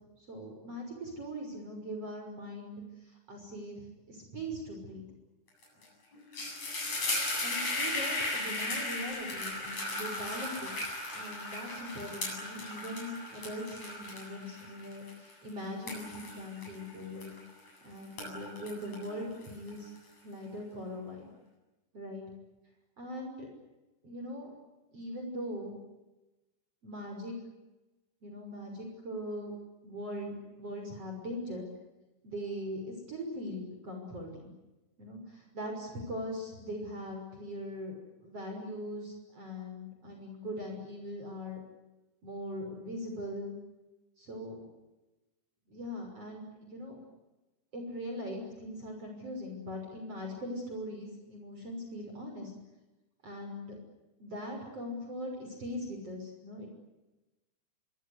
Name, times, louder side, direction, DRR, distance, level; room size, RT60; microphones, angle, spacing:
voice 1, 0.2-5.0 5.8-5.9 7.4-10.7 11.1-17.3 17.8-19.9 20.2-21.3 21.9-22.2 23.0-23.5 24.0-24.5 24.9-25.8 26.8-27.3 28.2-29.5 29.8-31.7 32.2-34.5 35.0-41.6 42.2-43.5 44.2-44.6 45.7-47.0 47.7-52.5 53.2-53.8 54.2-56.7, equal, 30° right, 2 dB, 7.0 m, -41 dB
sound 1, 5.6-5.8 6.1-17.7 18.0-20.0, left 2 dB, 35° left, 9.3 m, -36 dB
26.5 x 25.0 x 8.3 m, 1.0 s
omnidirectional pair, 5.5 m